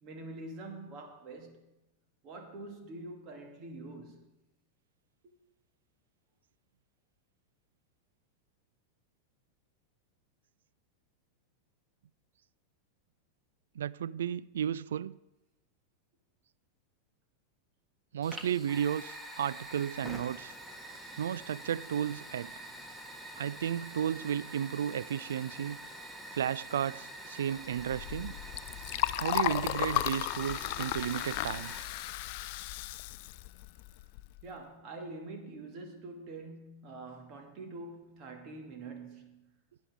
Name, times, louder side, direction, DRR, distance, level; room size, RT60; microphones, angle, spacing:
voice 1, 0.0-1.7 2.2-4.3 34.4-39.5, right 2 dB, 35° right, 2.4 m, -45 dB
voice 2, 13.8-15.2 18.1-20.6 21.2-22.5 23.4-25.8 26.3-28.3 29.2-31.7, right 9 dB, 65° right, 0.3 m, -33 dB
Fire, 18.2-32.1, right 1 dB, 5° right, 1.6 m, -46 dB
Liquid, 27.7-34.4, left 17 dB, 50° left, 0.3 m, -35 dB
18.0 x 10.0 x 3.7 m
figure-of-eight pair, 90°, 0 cm